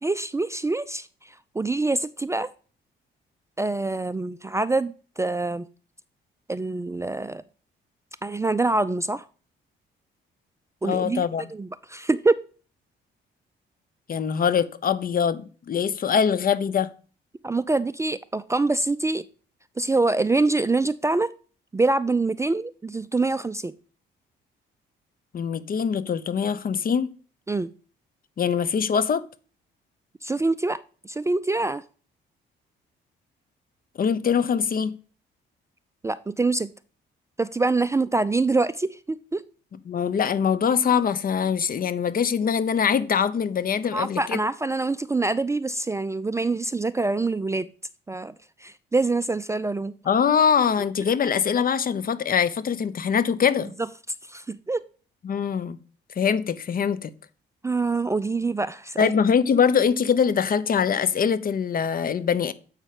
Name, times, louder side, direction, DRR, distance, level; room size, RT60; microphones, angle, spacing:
voice 1, 0.0-2.5 3.6-5.7 6.5-7.4 8.2-9.2 10.8-11.2 11.5-12.4 17.4-19.3 19.8-21.3 21.7-23.7 27.5-27.7 30.2-31.8 36.0-36.7 37.4-39.4 43.9-47.7 48.1-48.3 48.6-49.9 54.2-54.8 57.6-59.1, right 3 dB, 15° right, 0.4 m, -25 dB
voice 2, 10.8-11.5 14.1-16.9 25.3-27.1 28.4-29.3 34.0-35.0 39.9-44.4 50.1-53.7 55.2-55.8 56.2-57.1 59.0-62.5, left 7 dB, 45° left, 0.8 m, -23 dB
8.1 x 5.6 x 4.9 m
cardioid pair, 90°, 20 cm